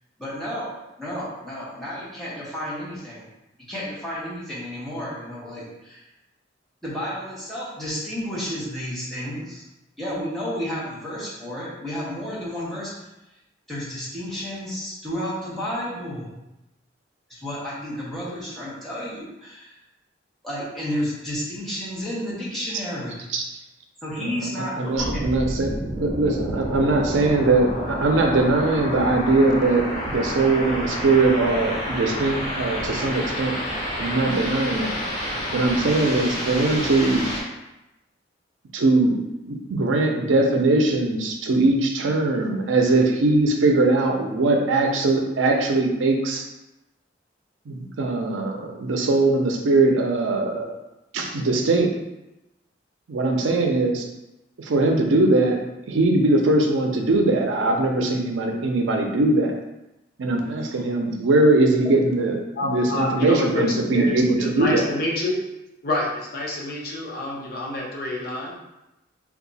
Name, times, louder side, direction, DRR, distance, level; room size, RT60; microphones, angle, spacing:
voice 1, 0.2-0.7 1.0-3.2 3.7-6.1 6.8-9.6 10.0-13.1 13.7-16.3 17.3-19.7 20.4-23.2 24.0-25.3 27.1-27.3 60.6-60.8, equal, ahead, -9 dB, 1.0 m, -31 dB
voice 2, 24.8-25.7 26.0-33.5 34.0-37.3 38.7-39.2 39.5-46.4 47.7-50.8 51.1-51.9 53.1-54.1 54.6-55.6 55.9-59.5 60.2-62.4 62.6-64.9, right 2 dB, 85° right, 2 dB, 0.5 m, -21 dB
sound 1, 24.9-37.4, equal, 25° left, 1.3 m, -29 dB
voice 3, 62.6-64.1 64.4-65.4 65.8-68.6, left 2 dB, 50° left, -3 dB, 0.7 m, -27 dB
2.7 x 2.3 x 3.9 m, 0.95 s
head